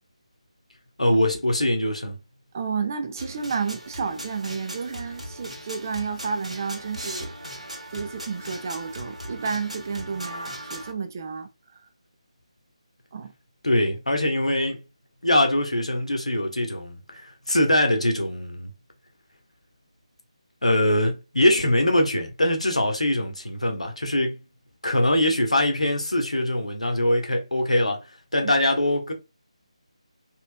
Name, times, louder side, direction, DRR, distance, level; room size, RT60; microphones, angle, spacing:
voice 1, 1.0-2.2 13.6-14.8 15.2-18.7 20.6-24.4 24.8-29.1, left 1 dB, 75° left, 1.0 m, -23 dB
voice 2, 2.5-7.3 7.9-11.5 13.1-13.3 28.4-28.5, right 5 dB, 25° right, 0.4 m, -31 dB
sound 1, 3.2-10.9, equal, 80° right, 1.2 m, -38 dB
3.2 x 2.9 x 2.2 m
figure-of-eight pair, 155°, 4 cm